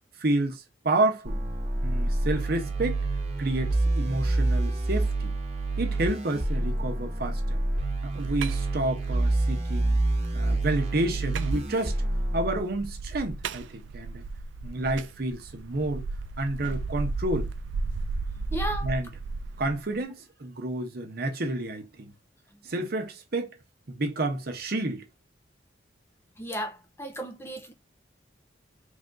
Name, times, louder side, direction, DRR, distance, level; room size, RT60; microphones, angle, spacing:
voice 1, 0.2-1.4 1.8-3.1 3.4-5.3 5.8-7.6 8.0-10.0 10.3-12.0 12.3-14.2 14.6-16.0 16.4-17.5 18.8-19.1 19.6-22.1 22.6-23.6 23.9-25.0, right 2 dB, 55° right, 0.8 m, -30 dB
sound 1, 1.2-12.6, right 2 dB, 35° right, 1.1 m, -27 dB
sound 2, 7.8-20.0, right 3 dB, 80° right, 0.4 m, -35 dB
voice 2, 18.5-18.9 26.4-27.7, equal, 15° left, 0.5 m, -34 dB
3.5 x 2.6 x 3.7 m
head